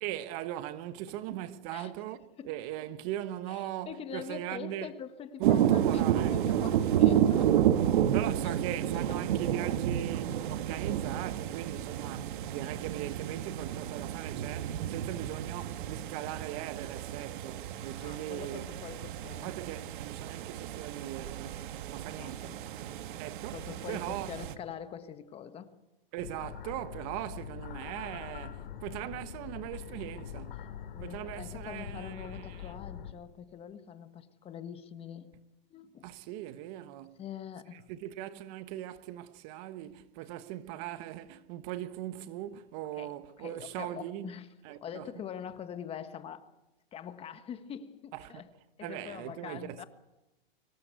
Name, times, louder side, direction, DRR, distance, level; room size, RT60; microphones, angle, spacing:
voice 1, 0.0-4.9 5.4-6.7 8.1-18.7 19.4-22.6 23.2-23.6 23.9-24.3 26.1-30.6 31.0-32.7 36.0-37.2 37.7-44.3 44.6-45.1 48.1-48.4 48.8-49.8, right 13 dB, 40° right, 1.2 m, -40 dB
voice 2, 3.5-7.5 8.4-8.6 8.8-9.4 18.0-19.5 22.1-22.9 23.5-25.7 30.9-35.3 35.7-36.1 37.2-37.9 43.0-44.5 44.8-46.5 46.9-48.5 48.8-49.9, left 8 dB, 20° left, 1.4 m, -44 dB
sound 1, 5.4-24.6, right 10 dB, 60° right, 1.5 m, -31 dB
sound 2, 26.2-33.1, left 9 dB, 70° left, 2.9 m, -43 dB
24.5 x 17.5 x 8.2 m
hypercardioid pair, 140°, 29 cm